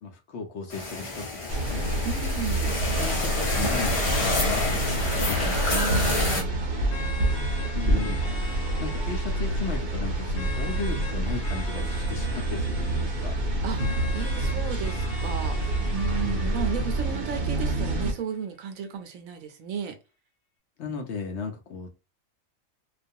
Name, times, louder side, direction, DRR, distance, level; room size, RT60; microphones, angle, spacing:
voice 1, 0.0-1.9 3.0-5.5 7.7-13.4 16.1-16.6 20.8-21.9, left 5 dB, 65° left, 0.8 m, -36 dB
sound 1, 0.7-6.4, left 2 dB, 40° left, 0.5 m, -28 dB
sound 2, 1.5-18.1, right 1 dB, 50° right, 0.7 m, -27 dB
voice 2, 2.0-2.7 5.7-6.7 13.6-13.8 14.1-20.0, right 7 dB, 80° right, 1.0 m, -34 dB
sound 3, 3.5-18.4, left 4 dB, 85° left, 1.1 m, -43 dB
2.3 x 2.2 x 2.6 m
omnidirectional pair, 1.4 m